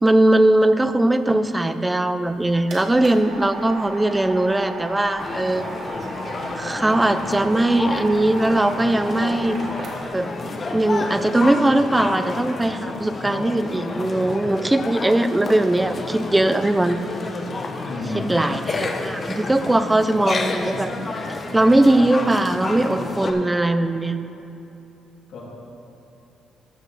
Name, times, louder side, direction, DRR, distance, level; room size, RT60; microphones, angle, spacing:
voice 1, 0.0-5.6 6.6-9.6 10.1-10.3 10.7-17.0 18.1-20.9 21.5-24.2, right 1 dB, 10° right, 10 dB, 0.4 m, -20 dB
sound 1, 2.1-10.3, right 1 dB, 60° right, 2.0 m, -36 dB
sound 2, 5.2-23.3, left 3 dB, 35° left, 0.8 m, -30 dB
voice 2, 17.8-18.6 25.3-25.4, left 1 dB, 75° left, -4 dB, 2.4 m, -31 dB
13.5 x 7.1 x 4.1 m, 2.9 s
cardioid pair, 130°, 0 cm